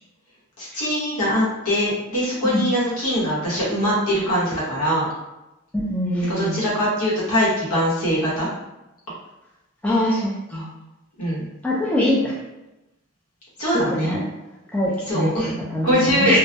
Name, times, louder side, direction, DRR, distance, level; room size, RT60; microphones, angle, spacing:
voice 1, 0.6-5.1 6.3-8.5 11.2-11.5 13.6-14.2 15.1-15.5 15.8-16.4, equal, 85° left, -7 dB, 1.1 m, -22 dB
voice 2, 5.7-6.6 9.8-10.7 11.6-12.3 13.7-14.2 14.7-16.4, left 1 dB, 5° left, -6 dB, 0.4 m, -23 dB
2.2 x 2.1 x 2.7 m, 0.96 s
head